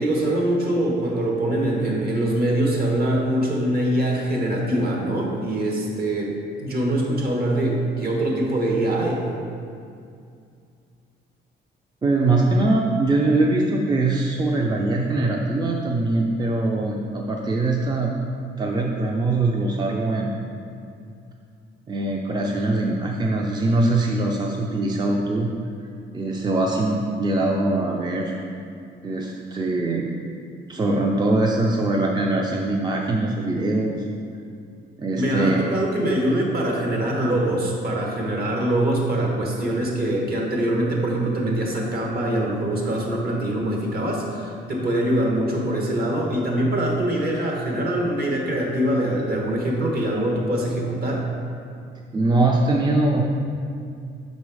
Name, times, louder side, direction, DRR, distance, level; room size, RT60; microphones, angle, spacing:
voice 1, 0.0-9.3 35.1-51.3, right 1 dB, 50° right, -1 dB, 1.3 m, -23 dB
voice 2, 12.0-18.1 18.6-20.3 21.9-25.5 26.1-28.3 29.0-30.1 30.7-34.0 35.0-35.8 52.1-53.2, right 2 dB, 20° right, 0 dB, 0.5 m, -22 dB
6.1 x 4.1 x 4.8 m, 2.4 s
cardioid pair, 90°, 20 cm